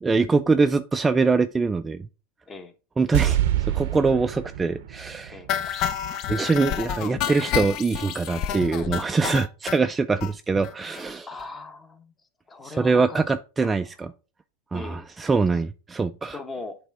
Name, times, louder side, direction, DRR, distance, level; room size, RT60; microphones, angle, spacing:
voice 1, 0.0-2.0 3.0-5.9 6.3-11.3 12.6-14.1 14.7-16.4, right 4 dB, 15° right, 0.3 m, -23 dB
sound 1, 3.1-6.3 6.6-6.7, right 12 dB, 70° right, 0.6 m, -27 dB
sound 2, 5.5-9.8 10.2-10.3 10.6-10.7 11.0-11.1 11.4-11.5, left 9 dB, 45° left, 0.6 m, -29 dB
voice 2, 11.3-12.1 12.5-13.2 13.6-13.8 14.7-15.0 15.5-15.6 16.3-16.8, left 3 dB, 15° left, 1.0 m, -39 dB
8.1 x 3.4 x 4.6 m
supercardioid pair, 135°, 0 cm